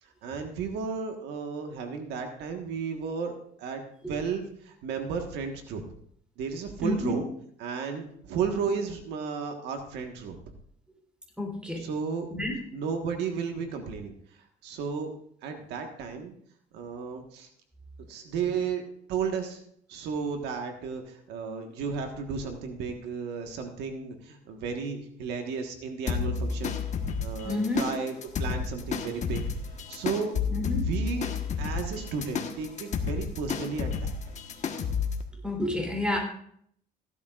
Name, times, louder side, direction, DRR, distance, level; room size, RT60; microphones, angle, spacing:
voice 1, 0.2-3.3 3.6-3.8 4.1-5.8 6.4-7.3 7.6-10.3 11.8-12.3 12.7-14.1 14.6-15.1 15.4-16.3 16.7-17.5 18.1-18.8 19.1-19.6 19.9-26.8 27.2-29.4 29.9-30.3 30.9-31.3 31.6-34.3, right 5 dB, 85° right, 4 dB, 1.5 m, -33 dB
voice 2, 6.8-7.2 11.4-11.8 12.3-12.5 18.5-18.6 27.4-27.8 30.5-30.8 35.4-36.2, left 1 dB, 5° right, 1 dB, 3.4 m, -29 dB
sound 1, 26.1-35.2, left 5 dB, 45° left, 1.3 m, -31 dB
15.5 x 11.5 x 2.5 m, 0.65 s
cardioid pair, 110°, 17 cm